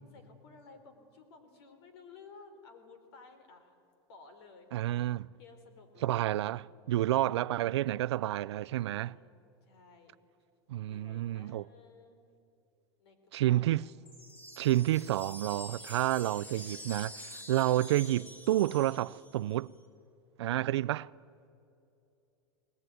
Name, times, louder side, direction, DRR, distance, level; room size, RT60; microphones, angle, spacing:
voice 1, 0.0-3.7 4.1-4.7 5.4-7.7 8.8-9.3 9.6-10.1 10.9-12.2 13.0-13.2 13.5-13.8 20.4-20.7, left 4 dB, 75° left, 3.8 m, -56 dB
voice 2, 4.7-5.3 6.0-9.1 10.7-11.6 13.3-13.8 14.6-19.7 20.4-21.1, right 14 dB, 85° right, 0.4 m, -30 dB
sound 1, 14.1-19.5, left 1 dB, 10° left, 3.6 m, -47 dB
20.5 x 20.0 x 9.3 m
supercardioid pair, 120°, 14 cm